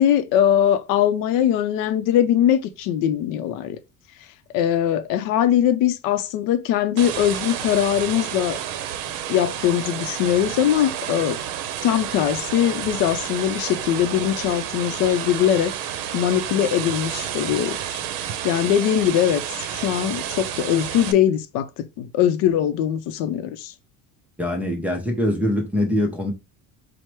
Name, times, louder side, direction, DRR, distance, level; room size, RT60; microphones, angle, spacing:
voice 1, 0.0-3.8 4.5-8.6 9.3-11.4 11.8-15.7 16.1-18.0 18.4-19.4 19.7-23.7, left 10 dB, 65° left, 0.5 m, -21 dB
sound 1, 7.0-21.1, right 10 dB, 80° right, 0.6 m, -30 dB
voice 2, 24.4-26.3, left 1 dB, 5° right, 0.5 m, -23 dB
4.6 x 2.1 x 4.4 m
cardioid pair, 175°, 34 cm